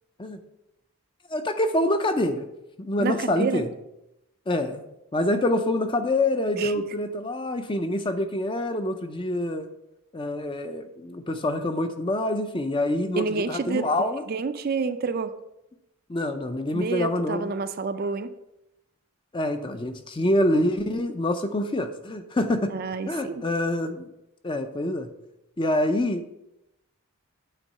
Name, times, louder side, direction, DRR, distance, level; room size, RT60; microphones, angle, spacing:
voice 1, 1.3-2.5 2.8-3.7 4.5-4.8 5.1-9.7 10.1-14.2 16.1-17.5 19.3-22.7 23.1-24.1 24.4-25.1 25.6-26.2, left 1 dB, 20° left, 8 dB, 0.5 m, -26 dB
voice 2, 3.0-3.6 6.6-6.7 13.2-15.3 16.7-18.3 22.7-23.4, right 4 dB, 45° right, 10 dB, 0.4 m, -29 dB
9.0 x 3.8 x 5.4 m, 0.88 s
head